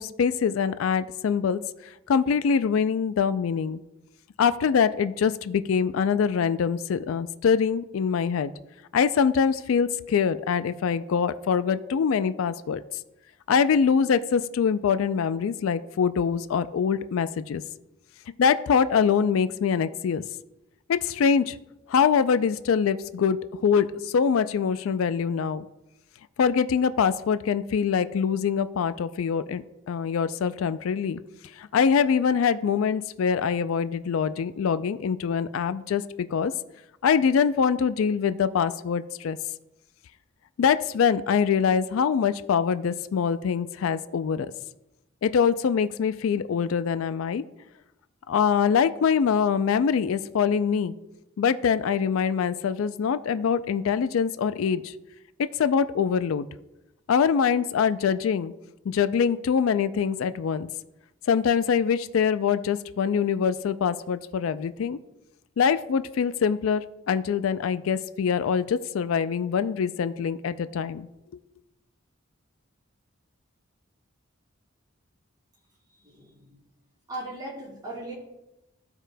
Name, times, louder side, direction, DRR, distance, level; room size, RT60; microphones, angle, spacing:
voice 1, 0.0-1.6 2.1-3.8 4.4-8.5 8.9-12.8 13.5-17.6 18.4-20.2 20.9-21.6 21.9-25.6 26.4-31.2 31.6-36.0 36.3-36.5 37.0-39.4 40.6-44.5 45.2-47.4 48.3-50.9 51.4-54.9 55.4-56.5 57.1-58.5 58.9-60.7 61.3-65.0 65.6-71.1, left 6 dB, 90° left, 13 dB, 0.4 m, -24 dB
voice 2, 76.0-76.6 77.1-78.1, right 2 dB, 20° right, -4 dB, 2.6 m, -38 dB
14.5 x 4.9 x 2.2 m, 0.94 s
head